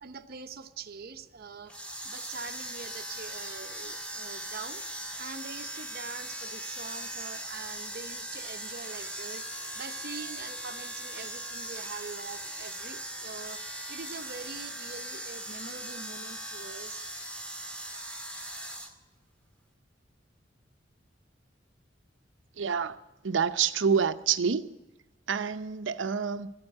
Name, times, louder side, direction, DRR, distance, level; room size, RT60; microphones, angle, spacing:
voice 1, 0.0-17.0 17.9-18.1, right 5 dB, 55° right, 0.8 m, -44 dB
sound 1, 1.7-18.9, right 1 dB, 5° left, 1.8 m, -39 dB
voice 2, 22.6-23.0 23.2-24.8 25.3-26.5, right 6 dB, 85° right, 0.6 m, -27 dB
13.5 x 9.0 x 9.7 m
head